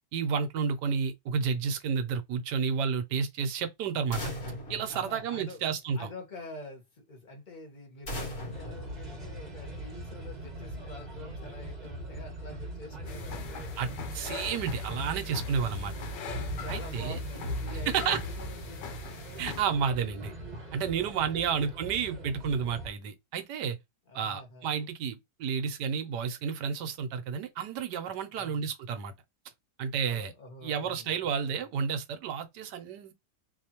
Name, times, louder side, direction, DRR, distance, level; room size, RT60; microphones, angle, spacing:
voice 1, 0.1-4.2 4.7-6.1 13.8-15.9 16.7-17.2 17.9-18.2 19.4-20.3 20.7-23.8 24.1-29.1 29.8-30.3 30.6-33.1, right 6 dB, 75° right, 1.3 m, -31 dB
sound 1, 4.1-5.9 8.1-9.8, left 1 dB, 60° left, 2.4 m, -39 dB
voice 2, 4.9-5.6 5.9-13.8 16.6-19.0 21.0-21.5 24.1-24.7 28.3-28.7 30.0-31.5, left 2 dB, 30° left, 1.2 m, -46 dB
sound 2, 8.5-22.9, right 1 dB, 30° right, 1.0 m, -40 dB
sound 3, 13.1-19.6, left 6 dB, 90° left, 1.5 m, -42 dB
4.2 x 2.8 x 2.9 m
omnidirectional pair, 1.8 m